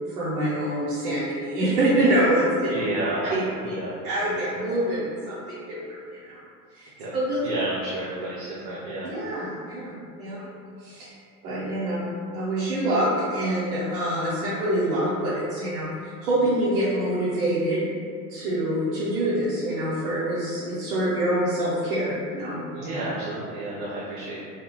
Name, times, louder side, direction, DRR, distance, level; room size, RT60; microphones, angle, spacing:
voice 1, 0.1-2.7 3.3-3.7 4.0-5.8 6.2-6.4 6.7-7.5 9.0-10.4 10.8-11.1 11.4-12.0 12.3-17.8 18.3-22.6, right 1 dB, 60° right, -10 dB, 0.9 m, -25 dB
voice 2, 2.6-3.3 3.6-4.4 4.7-4.8 7.0-7.1 7.4-9.1 22.7-24.4, right 2 dB, 35° right, -7 dB, 0.5 m, -31 dB
3.5 x 2.2 x 2.2 m, 2.3 s
figure-of-eight pair, 80°, 49 cm